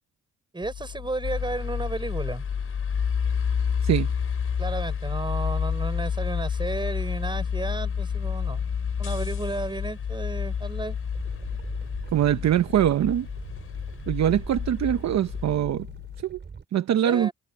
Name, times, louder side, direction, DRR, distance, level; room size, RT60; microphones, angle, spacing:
voice 1, 0.5-2.4 4.6-8.7 9.0-11.0 17.0-17.3, right 2 dB, 15° right, 6.2 m, -33 dB
sound 1, 0.6-16.2, left 10 dB, 70° left, 2.6 m, -41 dB
sound 2, 1.2-15.6, left 6 dB, 45° left, 4.3 m, -30 dB
sound 3, 11.1-16.6, right 5 dB, 35° right, 5.6 m, -42 dB
voice 2, 12.1-13.3 14.1-15.9 16.2-16.4 16.7-17.3, right 11 dB, 65° right, 1.0 m, -23 dB
cardioid pair, 90°, 30 cm